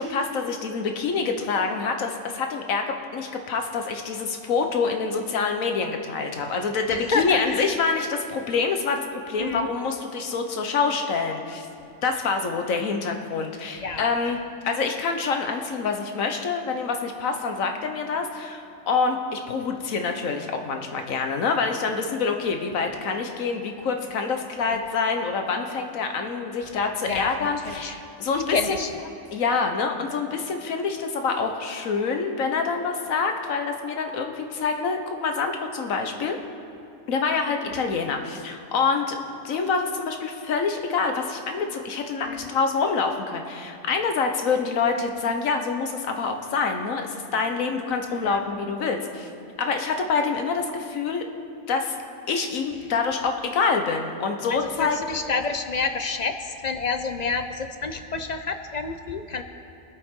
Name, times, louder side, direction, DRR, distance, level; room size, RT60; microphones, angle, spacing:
voice 1, 0.0-2.8 3.1-11.7 12.0-28.6 29.3-36.4 37.1-39.2 39.4-49.3 49.6-51.2 51.7-51.9 52.3-55.0, left 4 dB, 75° left, 4 dB, 1.4 m, -26 dB
voice 2, 6.9-7.6 9.4-9.7 13.8-14.0 24.7-24.8 27.1-27.9 28.5-29.0 37.7-37.9 42.2-42.5 48.2-48.4 54.5-59.4, left 4 dB, 50° left, 8 dB, 0.5 m, -29 dB
23.0 x 8.4 x 3.7 m, 2.7 s
omnidirectional pair, 1.4 m